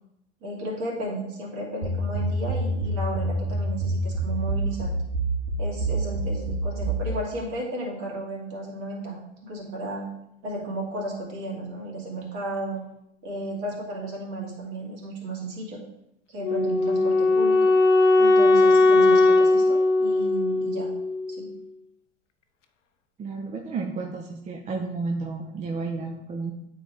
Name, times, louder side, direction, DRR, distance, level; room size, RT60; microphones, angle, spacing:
voice 1, 0.4-4.9 5.6-10.0 10.4-12.8 13.2-15.8 16.3-17.7 18.2-20.9 21.4-21.5, right 1 dB, 50° right, -3 dB, 2.7 m, -34 dB
sound 1, 1.8-7.1, right 2 dB, 85° right, 2.0 m, -27 dB
Wind instrument woodwind instrument, 16.4-21.5, left 2 dB, 90° left, 0.6 m, -19 dB
voice 2, 23.2-26.5, right 4 dB, 20° right, 3 dB, 0.6 m, -32 dB
9.1 x 3.9 x 3.2 m, 0.80 s
hypercardioid pair, 90°, 35 cm